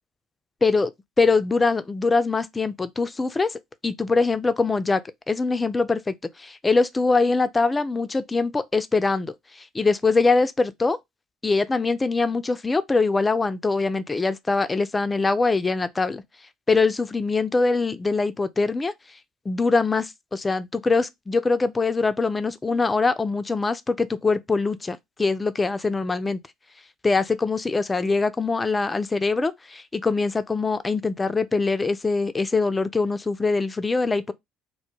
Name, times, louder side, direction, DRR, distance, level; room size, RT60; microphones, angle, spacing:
voice 1, 0.6-0.9 1.2-5.0 5.3-11.0 11.4-16.2 16.7-18.9 19.5-26.4 27.0-34.3, left 3 dB, 20° left, 0.3 m, -23 dB
2.1 x 2.0 x 3.0 m
hypercardioid pair, 60°, 0 cm